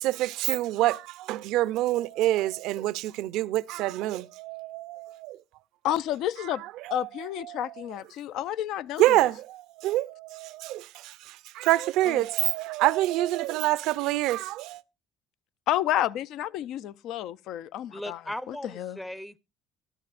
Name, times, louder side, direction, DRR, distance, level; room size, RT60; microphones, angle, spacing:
voice 1, 0.0-5.4 6.4-7.9 9.0-14.8, right 16 dB, 75° right, 0.5 m, -27 dB
voice 2, 5.8-6.6 6.9-9.2 15.7-18.2 18.5-19.0, left 12 dB, 70° left, 0.5 m, -30 dB
voice 3, 17.9-19.4, left 1 dB, 5° left, 0.6 m, -37 dB
13.5 x 12.5 x 2.5 m
cardioid pair, 105°, 0 cm